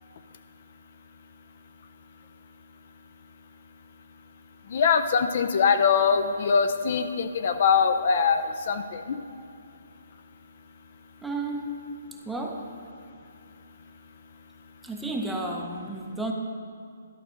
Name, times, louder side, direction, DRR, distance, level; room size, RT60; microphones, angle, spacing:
voice 1, 4.7-9.2, left 6 dB, 40° left, 9 dB, 0.4 m, -23 dB
voice 2, 11.2-11.9 12.2-12.7 14.8-16.3, right 2 dB, 5° right, 0 dB, 0.6 m, -32 dB
11.5 x 3.9 x 6.3 m, 2.5 s
hypercardioid pair, 165°, 0 cm